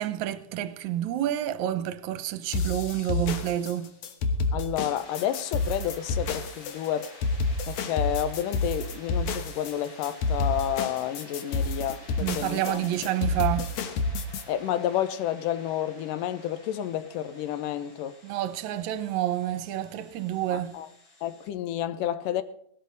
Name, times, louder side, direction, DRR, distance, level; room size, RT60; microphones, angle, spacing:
voice 1, 0.0-3.9 12.2-13.7 18.2-20.8, right 12 dB, 70° right, 2.0 m, -29 dB
sound 1, 2.5-14.4, left 3 dB, 70° left, 2.4 m, -29 dB
voice 2, 4.5-7.1 7.7-12.8 14.5-18.2 20.5-20.9 21.2-22.4, left 11 dB, 90° left, 2.5 m, -30 dB
sound 2, 4.8-21.5, left 1 dB, 30° left, 3.4 m, -50 dB
18.0 x 12.5 x 4.0 m
omnidirectional pair, 3.7 m